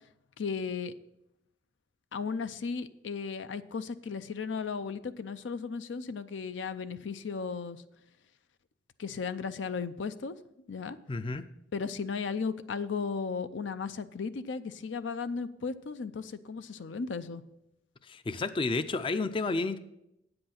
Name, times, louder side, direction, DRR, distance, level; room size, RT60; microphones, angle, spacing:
voice 1, 0.4-0.9 2.1-7.8 9.0-10.4 10.7-11.0 11.7-17.4, left 5 dB, 80° left, 13 dB, 0.5 m, -35 dB
voice 2, 11.1-11.5 18.0-19.8, left 3 dB, 30° left, 12 dB, 0.4 m, -31 dB
8.7 x 7.8 x 5.8 m, 0.84 s
head